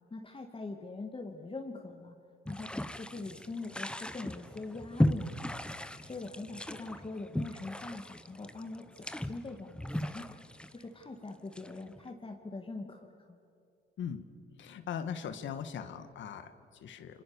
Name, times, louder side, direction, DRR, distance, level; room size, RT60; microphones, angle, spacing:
voice 1, 0.1-2.2 2.5-5.5 6.0-10.4 10.7-13.4, left 3 dB, 25° left, 2 dB, 2.2 m, -43 dB
sound 1, 2.5-12.0, left 1 dB, 5° left, 1.2 m, -36 dB
voice 2, 14.6-17.2, left 7 dB, 70° left, 9 dB, 1.7 m, -40 dB
27.0 x 24.5 x 7.1 m, 2.6 s
cardioid pair, 90°, 20 cm